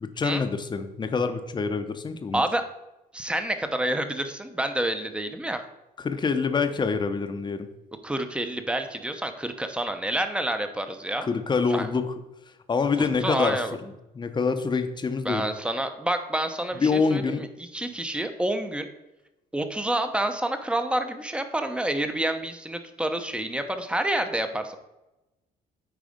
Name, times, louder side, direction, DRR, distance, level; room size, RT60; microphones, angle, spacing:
voice 1, 0.0-2.4 6.0-7.7 11.3-12.1 12.7-15.5 16.8-17.4, left 4 dB, 25° left, 8 dB, 0.8 m, -26 dB
voice 2, 2.3-2.6 3.1-5.6 8.0-11.3 11.7-11.9 13.0-13.8 15.2-18.9 19.5-24.8, right 1 dB, 5° right, 8 dB, 0.8 m, -28 dB
9.2 x 4.1 x 5.1 m, 0.97 s
cardioid pair, 110°, 17 cm